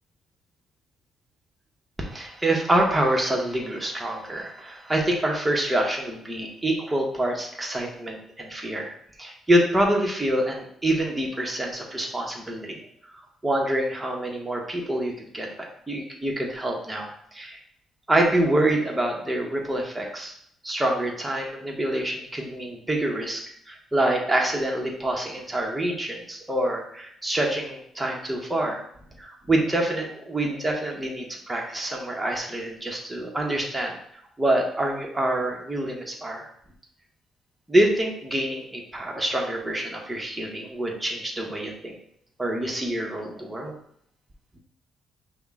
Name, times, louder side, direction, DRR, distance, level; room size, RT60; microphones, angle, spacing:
voice 1, 2.0-12.8 13.4-17.6 18.1-20.3 20.6-23.4 23.7-28.8 29.2-34.0 34.4-36.5 37.7-42.0 42.4-43.7, right 1 dB, 15° right, 0 dB, 0.9 m, -26 dB
5.3 x 2.1 x 3.6 m, 0.69 s
cardioid pair, 90°, 0 cm